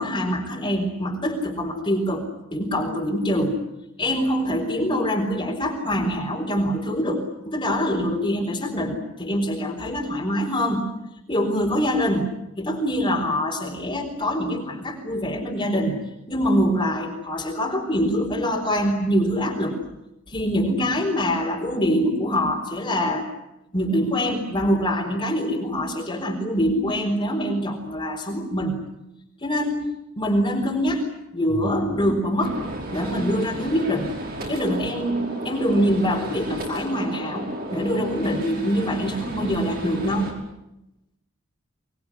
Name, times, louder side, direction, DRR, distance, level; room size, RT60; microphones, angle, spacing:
voice 1, 0.0-3.6 4.0-10.9 11.3-19.8 20.3-23.3 23.7-28.9 29.4-29.9 30.2-31.0 31.3-32.6 32.9-34.2 34.5-40.4, equal, 25° left, -1 dB, 4.1 m, -24 dB
Gunshot gunfire, 32.4-40.3, right 1 dB, 45° right, 5.3 m, -34 dB
25.0 x 20.5 x 9.9 m, 0.88 s
head